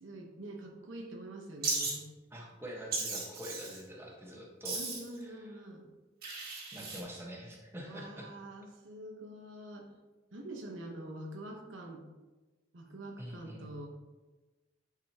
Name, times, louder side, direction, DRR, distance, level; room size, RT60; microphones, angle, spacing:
voice 1, 0.0-2.0 4.7-5.9 7.1-7.2 7.8-9.9 10.3-12.0 12.7-13.9, right 1 dB, 90° right, 1 dB, 1.1 m, -45 dB
Wild animals, 1.6-1.9 2.9-3.8 4.6-5.2 6.2-7.0, right 3 dB, 55° right, 1.8 m, -36 dB
voice 2, 2.3-4.8 5.2-5.6 6.7-8.3 13.2-13.7, equal, 15° right, -2 dB, 1.2 m, -45 dB
9.9 x 5.0 x 2.9 m, 1.2 s
head